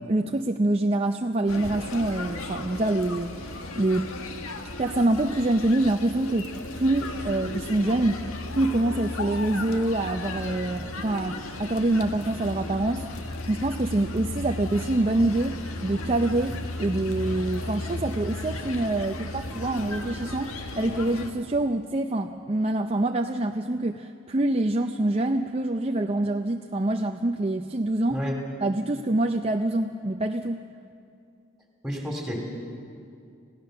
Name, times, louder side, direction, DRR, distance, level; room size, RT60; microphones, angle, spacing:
voice 1, 0.1-4.1 4.8-6.5 6.7-8.2 8.5-28.2 28.6-30.6, right 2 dB, 25° right, 5 dB, 0.5 m, -26 dB
sound 1, 1.5-21.3, left 2 dB, 80° left, 1.7 m, -35 dB
voice 2, 31.8-32.4, equal, ahead, 0 dB, 3.2 m, -30 dB
27.0 x 16.5 x 6.7 m, 2.4 s
head